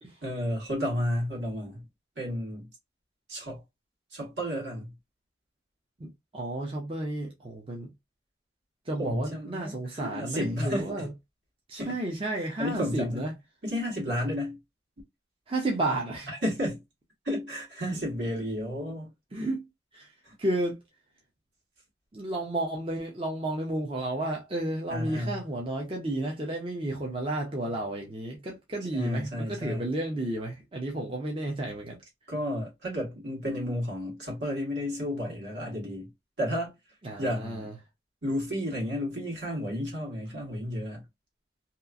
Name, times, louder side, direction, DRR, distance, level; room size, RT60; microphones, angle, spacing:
voice 1, 0.2-1.8 2.2-2.7 3.3-3.6 4.1-5.0 9.0-11.1 11.8-12.0 12.4-13.2 13.6-14.6 16.4-16.8 17.2-19.1 20.2-20.3 24.9-25.4 28.9-29.8 32.3-36.1 36.4-36.7 37.2-37.7 38.2-41.0, equal, 75° right, 1.5 m, -32 dB
voice 2, 6.0-7.9 8.9-11.1 11.7-13.3 15.5-16.3 17.9-18.0 19.3-19.6 19.9-20.1 20.4-20.8 22.1-32.0 37.0-37.7, right 1 dB, 30° right, 0.5 m, -32 dB
2.9 x 2.4 x 2.4 m
head